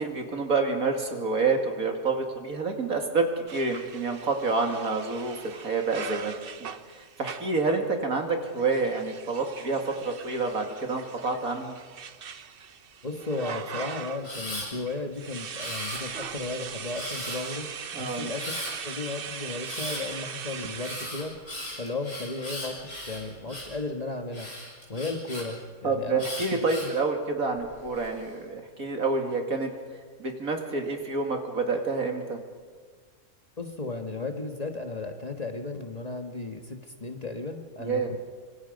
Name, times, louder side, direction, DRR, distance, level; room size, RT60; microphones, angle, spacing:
voice 1, 0.0-3.3 3.5-11.8 17.9-18.3 25.8-29.7 30.2-32.4 37.8-38.1, right 3 dB, 75° right, 3 dB, 2.8 m, -28 dB
sound 1, 3.5-7.6 8.5-14.3 14.7-21.2, right 7 dB, 45° right, 0.9 m, -40 dB
voice 2, 13.0-17.7 18.0-18.5 18.8-24.5 24.9-26.3 26.8-26.9 33.6-38.2, left 3 dB, 30° left, 5 dB, 1.5 m, -35 dB
Camera, 14.2-14.7 15.6-16.3 16.9-17.5 18.4-18.7 19.6-20.0 20.8-23.8 24.3-25.4 26.2-27.0 27.6-28.1, left 1 dB, 60° left, 6.6 m, -37 dB
25.5 x 25.0 x 5.3 m, 1.5 s
omnidirectional pair, 1.5 m